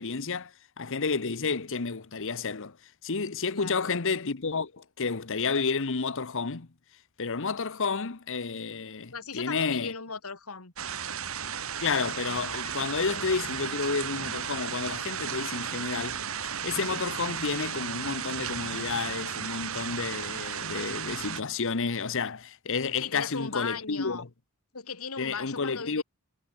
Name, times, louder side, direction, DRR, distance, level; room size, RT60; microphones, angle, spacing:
voice 1, 0.0-2.8 3.0-6.7 7.2-9.9 11.8-16.2 16.6-24.3 25.2-26.0, left 4 dB, 65° left, 1.1 m, -31 dB
voice 2, 3.5-4.0 9.1-10.7 12.6-12.7 23.0-24.2 24.7-26.0, left 5 dB, 85° left, 3.0 m, -38 dB
sound 1, 10.8-21.4, right 7 dB, 70° right, 2.7 m, -34 dB
head